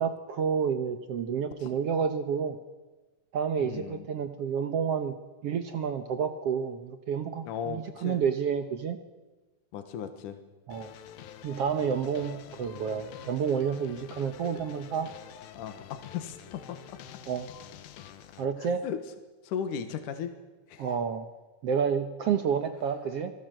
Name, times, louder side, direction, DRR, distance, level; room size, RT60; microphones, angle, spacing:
voice 1, 0.0-2.6 3.3-5.1 5.4-9.0 10.7-10.9 11.4-15.1 17.3-17.5 18.4-18.8 20.8-21.3 21.6-23.3, right 7 dB, 65° right, 9 dB, 1.5 m, -29 dB
voice 2, 3.6-4.1 7.4-8.2 9.7-10.4 15.5-17.0 18.6-19.0 19.4-20.3 20.7-20.9, left 8 dB, 70° left, 8 dB, 2.9 m, -36 dB
sound 1, 10.7-18.5, left 10 dB, 85° left, 3.0 m, -47 dB
26.0 x 18.0 x 7.7 m, 1.2 s
omnidirectional pair, 4.0 m